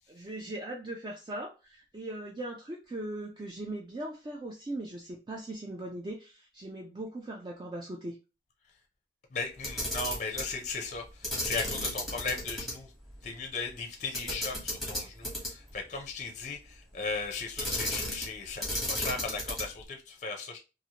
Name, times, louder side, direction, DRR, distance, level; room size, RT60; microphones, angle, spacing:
voice 1, 0.1-8.2, right 1 dB, 25° right, 0.3 m, -39 dB
voice 2, 9.3-12.9 13.2-20.6, left 4 dB, 40° left, 0.5 m, -37 dB
Camera, 9.5-10.5 11.2-12.7 13.1-13.2 14.1-15.7 17.6-18.3 18.6-19.8, left 1 dB, ahead, 1.0 m, -33 dB
2.7 x 2.5 x 2.8 m
head